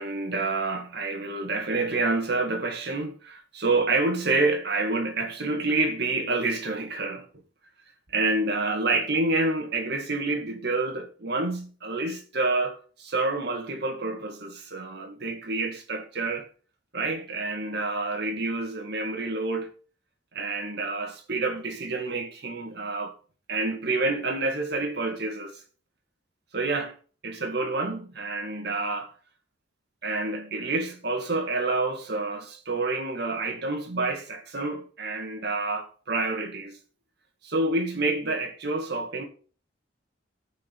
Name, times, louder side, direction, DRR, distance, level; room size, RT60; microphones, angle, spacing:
voice 1, 0.0-7.3 8.1-16.5 16.9-19.7 20.4-23.1 23.5-25.5 26.5-27.0 27.2-29.1 30.0-36.7 37.4-39.2, right 3 dB, 60° right, 2.1 m, -28 dB
14.5 x 5.3 x 5.3 m
head